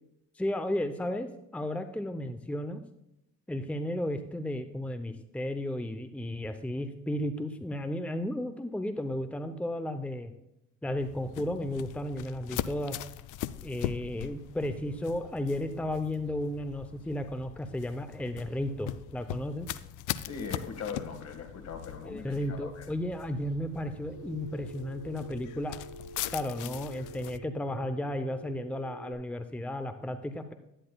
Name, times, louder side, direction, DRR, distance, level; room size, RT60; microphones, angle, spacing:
voice 1, 0.4-2.8 3.5-10.3 10.8-13.0 13.6-19.7 22.1-25.8 26.3-30.5, left 1 dB, 5° left, 8 dB, 0.7 m, -34 dB
sound 1, 11.0-27.4, left 13 dB, 90° left, 0.5 m, -41 dB
voice 2, 20.2-22.9, left 5 dB, 55° left, 6 dB, 1.9 m, -40 dB
Telephone, 24.1-29.1, right 1 dB, 70° right, 2.3 m, -47 dB
10.5 x 10.0 x 2.3 m, 0.85 s
cardioid pair, 90°, 30 cm